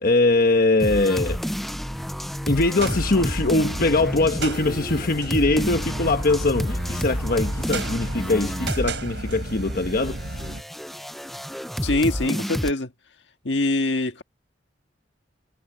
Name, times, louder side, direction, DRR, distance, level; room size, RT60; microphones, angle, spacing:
voice 1, 0.0-1.4 2.5-10.3, left 2 dB, 55° left, 1.2 m, -22 dB
sound 1, 0.8-9.0 9.3-12.7, equal, ahead, 0.4 m, -30 dB
sound 2, 2.8-10.6, right 2 dB, 75° right, 5.0 m, -32 dB
voice 2, 11.8-12.9 13.4-14.2, left 2 dB, 70° left, 1.6 m, -23 dB
head